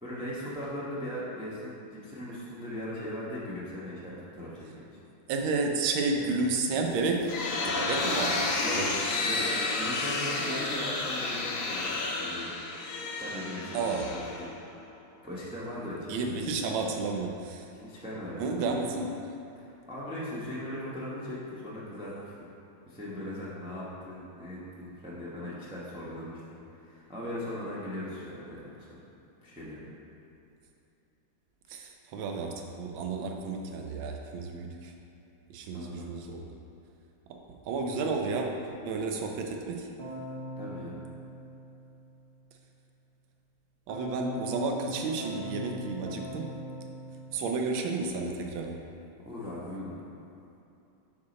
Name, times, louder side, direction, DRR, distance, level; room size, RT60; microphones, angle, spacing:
voice 1, 0.0-4.5 6.1-6.3 8.6-8.8 9.1-9.5 9.7-12.5 13.2-14.5 15.2-16.4 17.8-18.4 19.5-22.5 22.9-26.4 26.7-28.9 29.4-29.9 35.7-36.1 40.6-41.0 49.2-50.0, left 1 dB, 5° right, -8 dB, 0.4 m, -39 dB
voice 2, 5.3-7.4 7.6-8.9 13.7-14.1 16.1-17.7 18.4-19.1 31.7-34.9 35.5-36.5 37.3-39.9 43.9-46.5 47.3-48.8, right 3 dB, 80° right, 2 dB, 1.4 m, -31 dB
sound 1, 6.9-14.8, left 3 dB, 75° left, 0.7 m, -31 dB
Keyboard (musical), 40.0-42.3 43.9-48.2, right 1 dB, 50° right, 0.7 m, -42 dB
6.5 x 4.8 x 4.1 m, 2.7 s
omnidirectional pair, 2.2 m